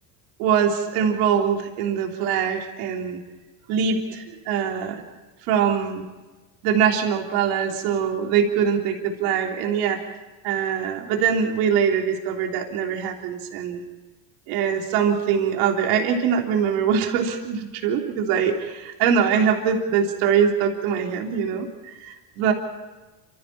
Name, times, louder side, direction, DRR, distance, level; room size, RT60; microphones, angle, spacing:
voice 1, 0.4-3.2 3.7-5.0 5.4-6.0 6.6-10.2 10.4-13.8 14.5-22.5, right 7 dB, 85° right, 2 dB, 3.5 m, -23 dB
28.0 x 27.0 x 4.3 m, 1.2 s
cardioid pair, 120°, 45 cm